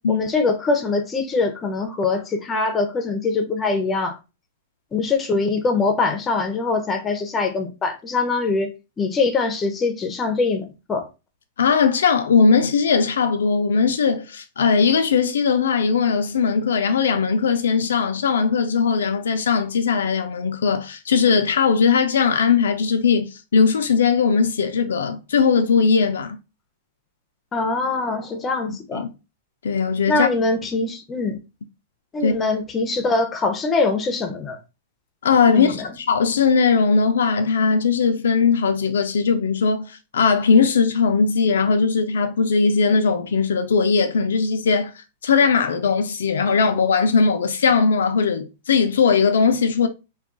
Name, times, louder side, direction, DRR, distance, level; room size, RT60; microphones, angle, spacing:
voice 1, 0.1-4.2 4.9-8.7 9.0-11.1 27.5-29.0 30.1-31.4 32.1-34.6 35.5-35.9, left 3 dB, 20° left, 0.5 m, -23 dB
voice 2, 11.6-26.4 28.7-29.1 29.6-30.3 32.2-32.3 35.2-49.9, left 5 dB, 90° left, 0.4 m, -19 dB
2.3 x 2.2 x 3.7 m
hypercardioid pair, 135°, 0 cm